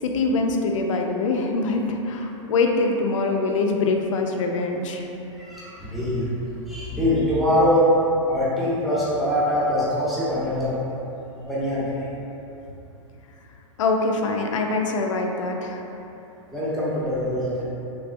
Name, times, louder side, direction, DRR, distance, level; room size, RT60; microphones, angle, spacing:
voice 1, 0.0-5.1 13.8-15.8, left 3 dB, 75° left, 2 dB, 0.4 m, -24 dB
voice 2, 5.3-6.3 6.6-7.9 8.3-10.8 11.3-12.1 16.5-17.6, equal, ahead, -11 dB, 0.8 m, -23 dB
3.4 x 3.3 x 2.5 m, 3.0 s
hypercardioid pair, 125°, 16 cm